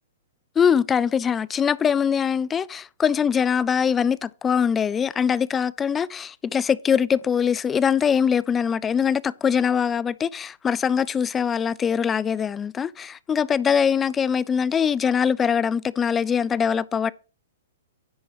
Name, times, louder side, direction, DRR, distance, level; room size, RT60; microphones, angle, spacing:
voice 1, 0.6-17.1, left 7 dB, 20° left, 0.3 m, -22 dB
10.0 x 4.3 x 5.7 m
hypercardioid pair, 120°, 0 cm